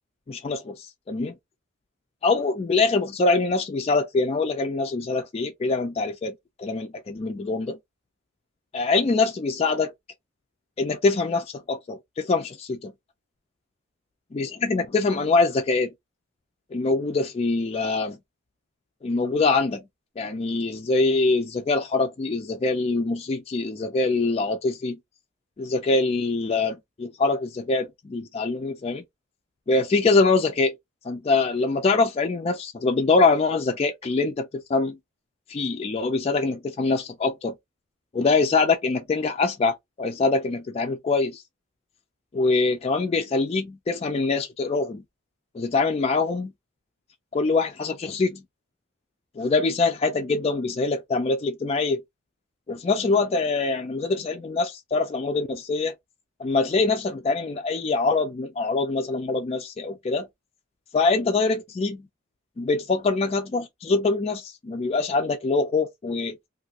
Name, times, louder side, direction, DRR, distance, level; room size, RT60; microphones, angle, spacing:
voice 1, 0.3-1.3 2.2-6.3 6.6-7.8 8.7-9.9 10.8-12.9 14.3-15.9 16.7-18.2 19.0-19.8 20.2-25.0 25.6-29.0 29.7-30.8 31.0-35.0 35.5-37.5 38.1-41.4 42.3-45.0 45.5-46.5 47.3-48.4 49.4-52.0 52.7-55.9 56.4-60.3 60.9-62.0 62.6-66.4, left 3 dB, 30° left, 0.3 m, -24 dB
2.6 x 2.5 x 2.8 m
head